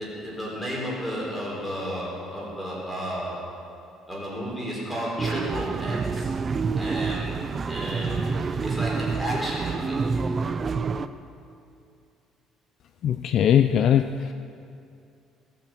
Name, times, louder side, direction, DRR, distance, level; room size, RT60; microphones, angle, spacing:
voice 1, 0.0-3.4 4.1-6.3 6.8-7.4 7.7-8.3 8.6-10.0, equal, 5° left, -5 dB, 4.0 m, -32 dB
sound 1, 5.2-11.1, right 4 dB, 25° right, 0.4 m, -28 dB
voice 2, 13.0-14.3, left 9 dB, 45° left, 9 dB, 0.4 m, -20 dB
18.0 x 9.3 x 7.6 m, 2.5 s
cardioid pair, 175°, 0 cm